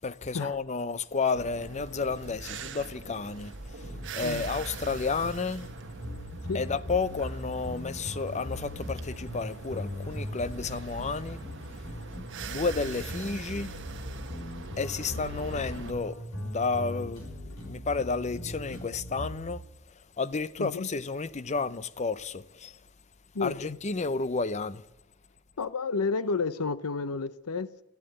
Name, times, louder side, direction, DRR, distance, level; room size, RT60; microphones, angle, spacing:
voice 1, 0.0-3.9 4.1-5.7 6.5-11.4 12.5-13.7 14.8-16.2 16.4-17.3 17.6-19.6 20.2-22.8 23.4-24.8, left 4 dB, 30° left, 0.6 m, -31 dB
sound 1, 1.4-15.9, right 3 dB, 55° right, 1.2 m, -42 dB
sound 2, 3.8-19.5, left 1 dB, 65° left, 5.5 m, -40 dB
voice 2, 20.6-20.9 23.3-23.8 25.6-27.8, left 4 dB, 85° left, 0.7 m, -31 dB
13.5 x 12.0 x 7.8 m
head